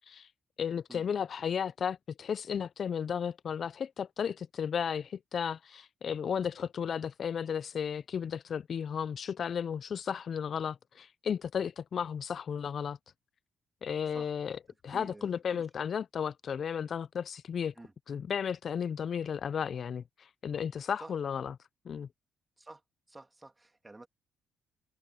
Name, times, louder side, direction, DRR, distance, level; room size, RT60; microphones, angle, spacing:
voice 1, 0.6-13.0 13.8-17.7 18.1-21.5 21.9-22.1, left 7 dB, 55° left, 0.3 m, -34 dB
voice 2, 14.9-15.7 17.8-17.9 21.0-21.1 22.6-22.8 23.1-24.1, right 2 dB, 15° right, 2.4 m, -50 dB
cardioid pair, 90°, 0 cm